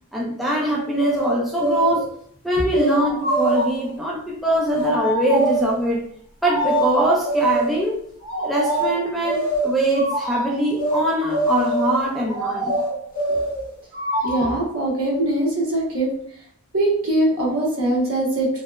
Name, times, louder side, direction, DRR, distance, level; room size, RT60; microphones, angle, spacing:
voice 1, 0.1-2.1 2.4-6.0 6.4-8.0 8.4-12.7, right 1 dB, ahead, -4 dB, 0.3 m, -22 dB
sound 1, 0.9-2.1 2.7-3.0 3.3-3.9 4.7-4.9 5.3-5.8 6.6-6.9 7.2-7.9 8.6-8.9 9.2-9.8 10.8-11.0 11.3-12.1 12.6-13.7, right 1 dB, 40° left, 0.7 m, -24 dB
sound 2, 3.0-3.8 4.8-5.7 6.4-7.3 8.2-9.1 9.9-10.6 12.3-13.0 13.9-14.7, right 1 dB, 40° right, 0.9 m, -26 dB
voice 2, 14.2-16.1 16.7-18.5, right 1 dB, 70° right, -4 dB, 0.9 m, -21 dB
2.9 x 2.0 x 2.2 m, 0.64 s
head